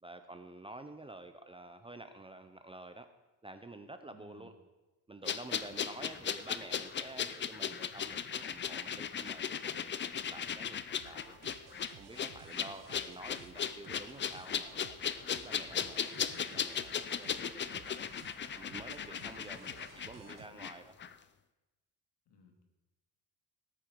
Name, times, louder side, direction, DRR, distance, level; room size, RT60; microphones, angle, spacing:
voice 1, 0.0-3.1 3.4-4.5 5.1-11.4 12.0-15.0 15.3-18.1 18.5-19.7 20.1-20.9, right 2 dB, 15° right, 8 dB, 0.6 m, -50 dB
voice 2, 4.2-4.5 5.6-6.3 12.6-13.1 19.2-20.6 22.3-22.7, left 4 dB, 65° left, 3 dB, 2.7 m, -59 dB
sound 1, 5.2-20.7 21.0-21.1, left 8 dB, 25° left, 0.5 m, -37 dB
sound 2, 11.0-20.5, right 10 dB, 50° right, 0.8 m, -57 dB
18.5 x 8.9 x 4.6 m, 1.1 s
cardioid pair, 130°, 42 cm